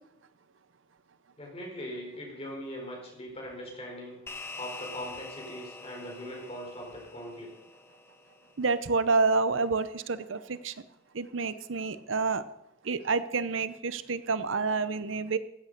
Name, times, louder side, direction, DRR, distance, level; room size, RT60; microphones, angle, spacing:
voice 1, 1.4-4.2 4.6-7.5, equal, 30° left, -1 dB, 4.6 m, -40 dB
sound 1, 4.3-8.9, left 3 dB, 15° left, 1.2 m, -45 dB
voice 2, 8.6-10.7 11.1-12.4 12.8-15.4, right 4 dB, 90° right, 14 dB, 0.8 m, -28 dB
15.0 x 8.4 x 6.7 m, 0.86 s
head